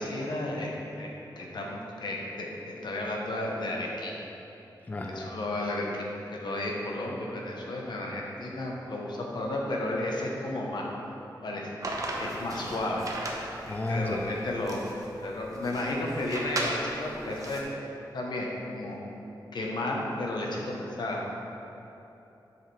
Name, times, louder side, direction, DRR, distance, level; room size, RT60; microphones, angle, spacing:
voice 1, 0.0-4.1 5.1-10.8 11.4-11.7 12.2-13.3 13.7-14.8 15.2-17.6 18.1-19.0 19.5-21.2, left 1 dB, 70° left, -1 dB, 1.0 m, -33 dB
voice 2, 4.9-5.4 13.6-14.4, left 2 dB, 20° left, 2 dB, 0.3 m, -32 dB
sound 1, 11.8-17.6, right 2 dB, 45° right, 0.7 m, -37 dB
7.3 x 5.6 x 3.3 m, 3.0 s
wide cardioid pair, 160°, 8 cm